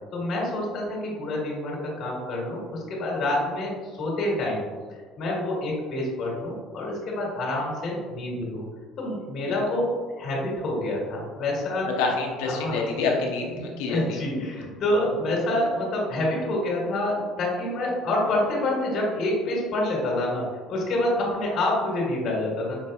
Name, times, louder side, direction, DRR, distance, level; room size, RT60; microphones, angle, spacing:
voice 1, 0.1-4.6 4.9-8.6 9.0-9.9 10.2-11.9 12.4-12.8 13.9-22.8, left 1 dB, 50° left, -4 dB, 1.4 m, -27 dB
voice 2, 11.8-14.2, left 4 dB, 80° left, 0 dB, 0.7 m, -27 dB
5.3 x 2.7 x 2.3 m, 1.5 s
hypercardioid pair, 70°, 0 cm